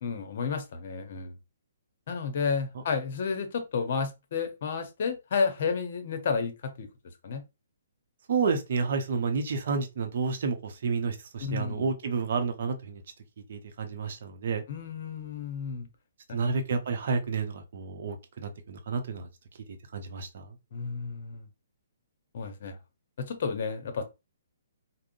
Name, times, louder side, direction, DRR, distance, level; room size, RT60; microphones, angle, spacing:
voice 1, 0.0-1.4 2.1-6.9 7.2-7.4 11.4-11.9 14.7-15.9 16.3-16.6 20.7-21.5 22.3-22.8 23.2-24.0, left 5 dB, 55° left, 0.7 m, -31 dB
voice 2, 8.3-13.0 13.5-14.6 16.3-19.3 19.9-20.5, right 5 dB, 55° right, 0.6 m, -30 dB
3.5 x 2.0 x 2.4 m
figure-of-eight pair, 130°, 0 cm